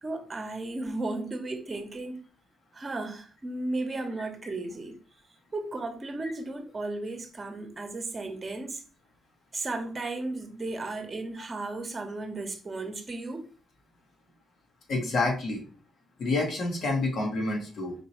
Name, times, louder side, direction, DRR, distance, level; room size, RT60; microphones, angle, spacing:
voice 1, 0.0-2.2 2.7-5.0 5.5-8.8 9.5-13.4, right 2 dB, 30° right, 1.1 m, -34 dB
voice 2, 14.9-15.6 16.2-17.9, left 2 dB, 65° left, 1.7 m, -28 dB
5.1 x 3.0 x 3.1 m
cardioid pair, 90°, 0 cm